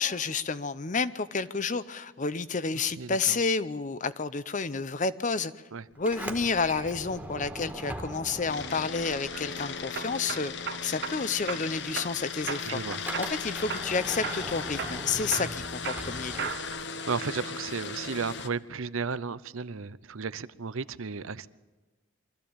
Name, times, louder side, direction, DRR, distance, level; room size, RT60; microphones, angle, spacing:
voice 1, 0.0-5.5 6.0-10.5 10.8-12.8 13.2-16.5, left 4 dB, 35° left, 0.7 m, -30 dB
voice 2, 3.0-3.4 5.7-5.8 12.7-13.0 17.1-21.5, right 5 dB, 80° right, 0.7 m, -34 dB
Sliding door, 5.9-10.2 10.5-16.9, right 1 dB, 5° right, 1.8 m, -41 dB
sound 1, 8.5-18.5, left 5 dB, 55° left, 1.0 m, -37 dB
sound 2, 9.1-9.4 10.0-11.2 11.5-12.1 12.5-12.8 13.1-13.9 14.2-14.5 14.8-16.8 17.2-17.7, right 6 dB, 50° right, 1.0 m, -36 dB
24.0 x 14.5 x 8.7 m
head